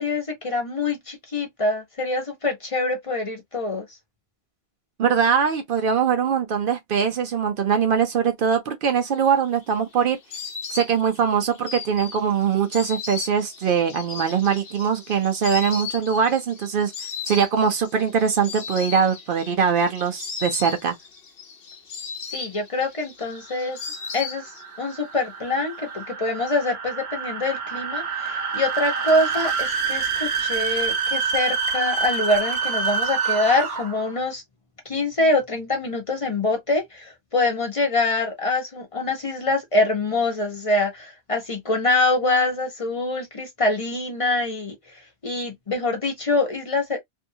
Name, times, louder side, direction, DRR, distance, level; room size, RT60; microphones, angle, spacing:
voice 1, 0.0-3.9 22.3-23.8 24.1-24.4 24.8-34.4 34.9-44.7 45.2-47.0, left 2 dB, 35° left, 0.9 m, -24 dB
voice 2, 5.0-10.2 10.7-16.9 17.3-20.9, right 7 dB, 65° right, 0.7 m, -22 dB
Insect, 9.2-24.9 25.1-25.9, left 6 dB, 65° left, 0.9 m, -37 dB
sound 1, 23.4-34.1, right 5 dB, 80° right, 1.0 m, -27 dB
2.7 x 2.3 x 2.6 m
omnidirectional pair, 1.0 m